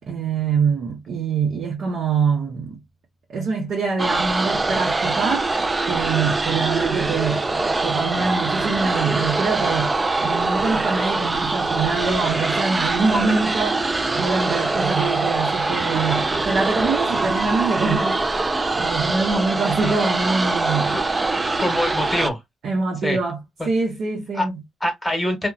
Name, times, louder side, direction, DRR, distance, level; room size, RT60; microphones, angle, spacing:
voice 1, 0.1-2.8 3.3-18.4 18.7-21.0 22.6-23.4 23.7-24.6, right 4 dB, 65° right, 0.8 m, -24 dB
sound 1, 4.0-22.3, right 3 dB, 25° right, 0.3 m, -23 dB
voice 2, 21.6-22.4 23.0-23.2 23.6-23.7 24.3-24.5 24.8-25.5, left 1 dB, 15° left, 1.1 m, -24 dB
2.7 x 2.2 x 2.4 m
cardioid pair, 105°, 0 cm